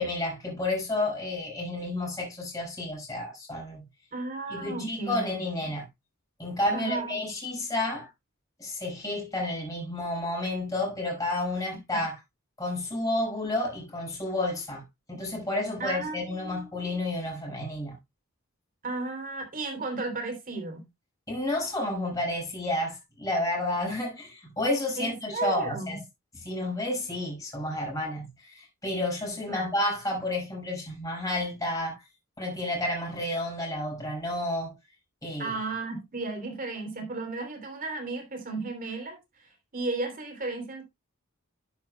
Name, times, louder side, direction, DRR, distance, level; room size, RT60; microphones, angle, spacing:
voice 1, 0.0-3.8 4.5-5.9 6.4-8.1 8.6-12.2 12.6-14.8 15.1-17.9 21.3-26.0 26.3-32.0 32.4-34.7 35.2-35.5, left 1 dB, 15° left, 6.3 m, -31 dB
voice 2, 4.1-5.3 5.6-5.7 6.7-7.2 15.8-16.9 18.8-20.9 25.0-26.0 29.5-29.7 35.4-39.2 39.7-40.8, right 3 dB, 40° right, 3.3 m, -34 dB
11.0 x 9.6 x 2.3 m
head